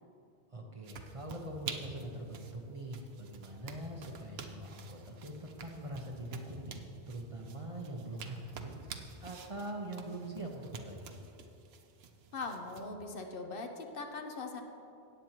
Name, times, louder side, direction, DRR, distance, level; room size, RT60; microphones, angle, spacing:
voice 1, 0.5-11.2, right 1 dB, 35° right, 0 dB, 1.1 m, -43 dB
sound 1, 0.8-12.9, right 5 dB, 75° right, 1.0 m, -49 dB
voice 2, 12.3-14.6, left 3 dB, 60° left, 4 dB, 1.0 m, -41 dB
17.5 x 8.1 x 3.0 m, 2.7 s
omnidirectional pair, 1.1 m